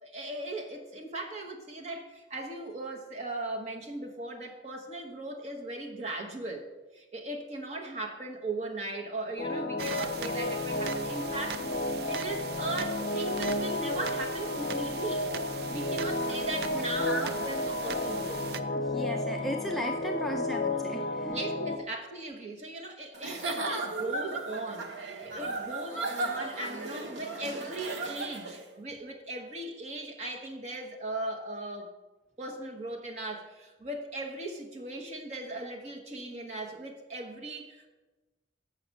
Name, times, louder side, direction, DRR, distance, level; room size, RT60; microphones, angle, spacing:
voice 1, 0.0-11.6 12.1-15.3 15.7-18.5 21.2-31.9 32.4-37.9, right 2 dB, 40° right, 1 dB, 1.1 m, -38 dB
sound 1, 9.4-21.8, left 2 dB, 55° left, 0.6 m, -32 dB
sound 2, 9.8-18.6, right 7 dB, 60° right, 0.4 m, -41 dB
voice 2, 17.0-17.3 18.7-21.4, equal, ahead, 2 dB, 0.4 m, -36 dB
Giggle / Chuckle chortle, 23.1-28.6, right 3 dB, 90° right, 1.0 m, -35 dB
6.8 x 5.6 x 6.4 m, 1.1 s
head